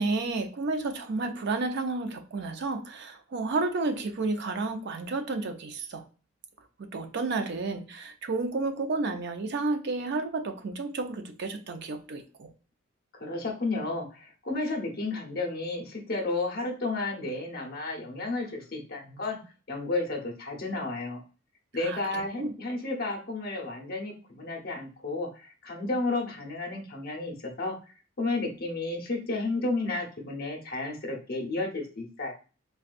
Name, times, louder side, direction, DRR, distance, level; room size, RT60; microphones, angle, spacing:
voice 1, 0.0-6.0 6.8-12.5 21.8-22.5, right 3 dB, 60° right, 7 dB, 0.5 m, -31 dB
voice 2, 13.2-19.4 19.7-21.2 21.7-27.8 28.2-32.3, left 2 dB, 50° left, 1 dB, 0.9 m, -32 dB
4.0 x 2.3 x 2.5 m, 0.35 s
head